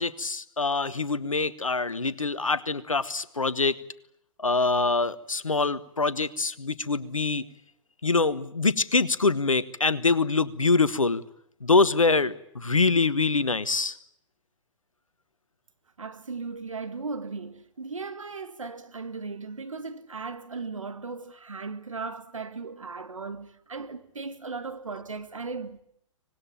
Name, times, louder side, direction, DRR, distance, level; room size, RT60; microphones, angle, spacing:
voice 1, 0.0-3.8 4.4-7.4 8.0-11.2 11.6-14.0, left 3 dB, 80° left, 1.4 m, -24 dB
voice 2, 16.0-25.8, right 4 dB, 75° right, 2.1 m, -37 dB
25.0 x 19.5 x 8.9 m
figure-of-eight pair, 115°, 17 cm